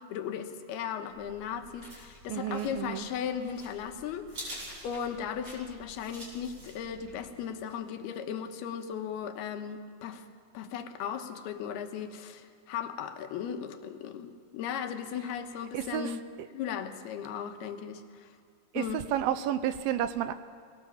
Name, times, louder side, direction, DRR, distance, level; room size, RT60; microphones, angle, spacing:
voice 1, 0.0-10.3 10.5-16.2 16.5-18.3 18.8-19.1, left 8 dB, 80° left, 6 dB, 3.1 m, -37 dB
sound 1, 1.1-7.3, equal, 35° right, 6.7 m, -48 dB
voice 2, 2.3-3.1 15.7-16.2 18.7-20.3, right 11 dB, 80° right, 12 dB, 2.4 m, -31 dB
21.5 x 18.0 x 7.2 m, 2.4 s
omnidirectional pair, 4.5 m